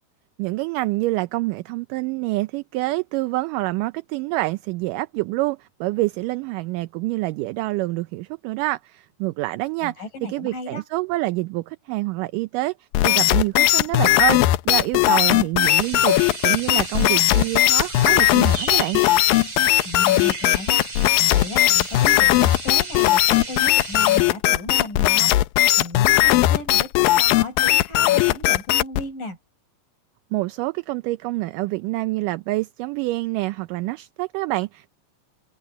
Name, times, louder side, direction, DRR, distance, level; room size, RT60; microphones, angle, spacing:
voice 1, 0.4-9.9 10.3-16.2 16.4-19.0 30.3-34.9, right 20 dB, 80° right, 2.1 m, -26 dB
voice 2, 9.8-10.8 19.8-20.8 21.3-25.4 25.8-29.4, left 2 dB, 70° left, 7.4 m, -35 dB
sound 1, 12.9-29.0, left 16 dB, 85° left, 2.5 m, -18 dB
sound 2, 15.6-24.2, right 3 dB, 40° right, 6.9 m, -35 dB
omnidirectional pair, 4.0 m